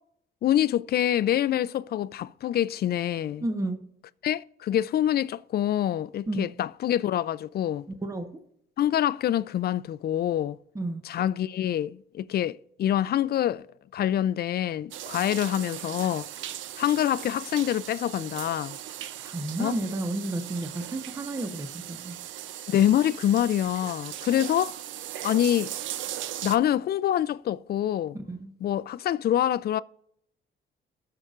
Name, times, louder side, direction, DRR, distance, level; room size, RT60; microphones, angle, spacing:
voice 1, 0.4-3.4 4.2-7.9 8.8-10.6 11.0-13.6 13.9-16.3 16.8-18.8 19.6-19.8 22.7-24.7 25.2-25.7 26.4-28.2 28.6-29.8, left 11 dB, 55° left, 0.4 m, -26 dB
voice 2, 3.4-3.8 6.3-6.5 8.0-8.4 10.7-11.0 19.2-22.2 28.1-28.5, right 2 dB, 15° right, 1.0 m, -32 dB
sound 1, 14.9-26.6, right 12 dB, 75° right, 0.5 m, -38 dB
18.5 x 6.7 x 2.5 m
cardioid pair, 90°, 20 cm